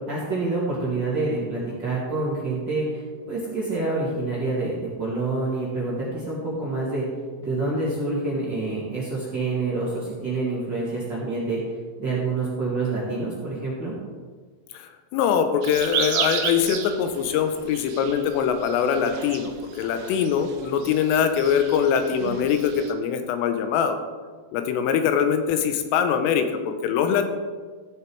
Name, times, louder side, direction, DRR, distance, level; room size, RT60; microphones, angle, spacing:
voice 1, 0.1-7.0 7.4-11.6 12.0-13.9, right 3 dB, 50° right, -7 dB, 1.3 m, -27 dB
voice 2, 14.7-24.0 24.5-27.3, left 7 dB, 90° left, 7 dB, 3.4 m, -23 dB
sound 1, 15.6-22.9, right 8 dB, 75° right, 2.8 m, -33 dB
15.0 x 6.8 x 4.6 m, 1.5 s
omnidirectional pair, 5.8 m